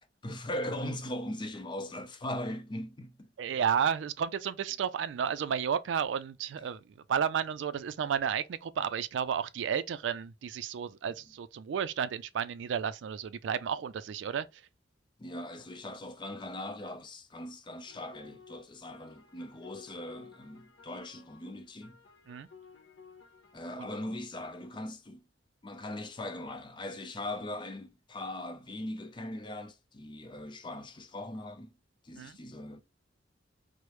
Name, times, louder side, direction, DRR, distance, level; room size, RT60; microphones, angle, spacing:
voice 1, 0.2-3.3 15.2-22.0 23.5-25.2 25.6-31.7 32.0-32.8, left 1 dB, 25° left, 0.5 m, -40 dB
voice 2, 3.4-6.8 7.1-14.6 22.3-22.5 23.8-23.9 32.2-32.4, right 7 dB, 80° right, 0.3 m, -32 dB
sound 1, 17.9-23.6, left 5 dB, 90° left, 0.7 m, -56 dB
4.7 x 2.0 x 3.0 m
head